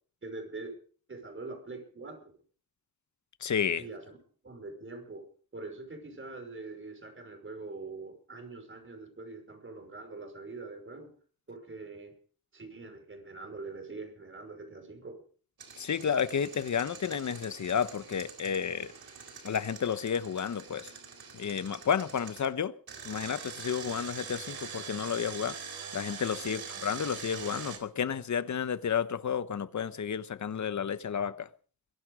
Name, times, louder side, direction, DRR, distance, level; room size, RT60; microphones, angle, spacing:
voice 1, 0.2-0.7 1.1-2.3 3.8-4.2 4.4-5.2 5.5-11.1 11.5-12.1 12.5-15.2 26.4-26.5, right 3 dB, 35° right, 5.6 m, -43 dB
voice 2, 3.4-3.8 15.8-18.9 19.4-20.9 21.3-22.7 23.0-25.6 25.9-31.5, left 7 dB, 55° left, 1.1 m, -31 dB
Engine, 15.6-22.5 22.9-27.8, right 6 dB, 90° right, 3.7 m, -44 dB
22.5 x 11.0 x 5.0 m
wide cardioid pair, 115°, 35 cm